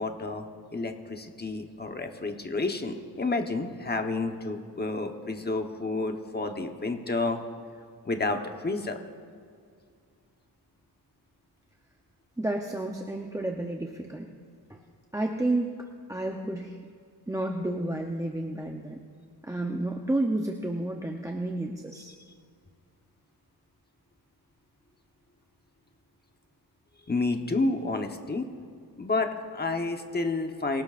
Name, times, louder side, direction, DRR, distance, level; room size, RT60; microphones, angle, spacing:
voice 1, 0.0-7.4 8.0-9.0 27.1-28.5 29.0-30.8, left 3 dB, 25° left, 5 dB, 1.0 m, -30 dB
voice 2, 12.4-14.3 14.7-14.8 15.1-16.8 17.3-19.0 19.4-22.1, right 1 dB, 10° right, 1 dB, 0.7 m, -31 dB
26.0 x 17.5 x 2.5 m, 2.2 s
wide cardioid pair, 140°, 40 cm